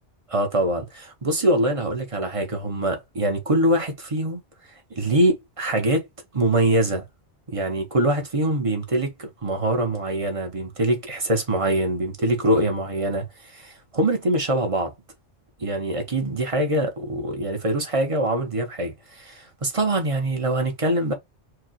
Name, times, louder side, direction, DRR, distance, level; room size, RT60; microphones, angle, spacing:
voice 1, 0.3-4.4 5.0-6.1 6.3-7.0 7.5-14.9 15.6-21.1, right 1 dB, 30° right, 1.0 m, -24 dB
4.7 x 2.4 x 3.0 m
omnidirectional pair, 1.2 m